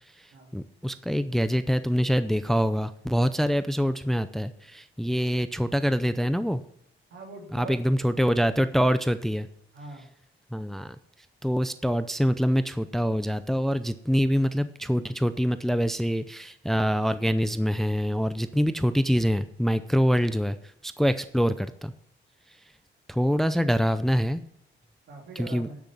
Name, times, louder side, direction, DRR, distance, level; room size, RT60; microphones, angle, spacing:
voice 1, 0.5-6.6 7.5-9.5 10.5-11.0 11.4-20.6 20.8-21.9 23.1-24.4 25.4-25.7, equal, ahead, 12 dB, 0.6 m, -25 dB
voice 2, 7.1-8.1 9.7-10.1 20.1-20.3 25.1-25.8, right 3 dB, 70° right, 0 dB, 3.5 m, -43 dB
10.5 x 6.1 x 7.4 m, 0.72 s
cardioid pair, 90°, 20 cm